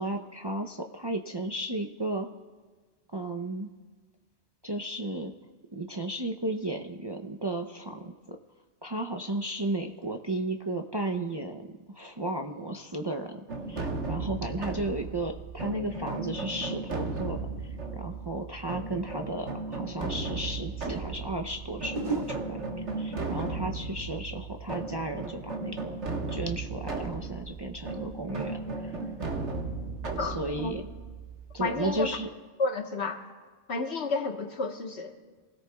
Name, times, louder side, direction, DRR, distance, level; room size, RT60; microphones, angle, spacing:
voice 1, 0.0-2.3 3.1-3.7 4.6-5.3 5.7-8.4 8.8-17.4 17.9-25.9 26.3-29.0 30.2-30.9 31.5-32.3, right 2 dB, 30° right, 3 dB, 0.5 m, -34 dB
sound 1, 13.5-32.2, right 3 dB, 90° right, 1.7 m, -36 dB
sound 2, 21.9-25.1 25.3-25.8, right 4 dB, 50° right, 1.7 m, -38 dB
voice 2, 30.2-30.8 31.6-32.2 32.6-33.2 33.7-35.1, left 3 dB, 70° left, 3 dB, 1.6 m, -31 dB
26.0 x 17.0 x 2.3 m, 1.4 s
omnidirectional pair, 1.2 m